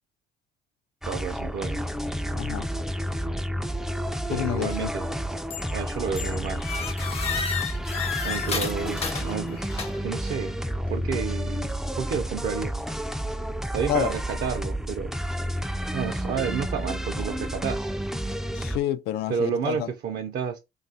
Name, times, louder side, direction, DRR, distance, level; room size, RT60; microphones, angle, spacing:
sound 1, 1.0-18.8, equal, ahead, 0.3 m, -30 dB
voice 1, 1.0-1.8 4.3-5.3 5.7-6.6 8.2-10.6 10.9-12.8 13.7-15.1 15.9-17.9 19.3-20.6, right 7 dB, 60° right, 0.5 m, -31 dB
voice 2, 2.3-2.7 4.3-4.9 13.9-14.1 18.5-19.9, left 12 dB, 80° left, 0.4 m, -28 dB
sound 2, 5.5-5.8 6.2-10.2, left 6 dB, 35° left, 0.6 m, -32 dB
3.2 x 2.3 x 2.7 m
cardioid pair, 110°, 17 cm